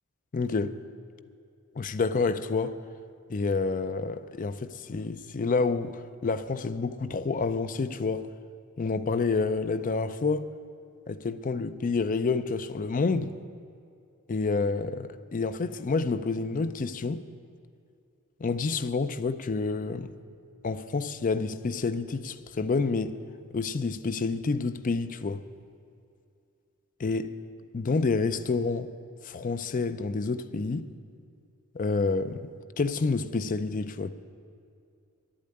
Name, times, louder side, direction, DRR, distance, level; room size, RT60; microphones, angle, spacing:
voice 1, 0.3-0.8 1.8-2.8 3.3-8.3 8.8-10.5 11.1-13.3 14.3-17.2 18.4-20.1 20.6-23.2 23.5-25.4 27.0-27.3 27.7-28.9 29.2-30.9 31.7-34.1, left 4 dB, 35° left, 0.4 m, -28 dB
11.0 x 8.7 x 9.3 m
head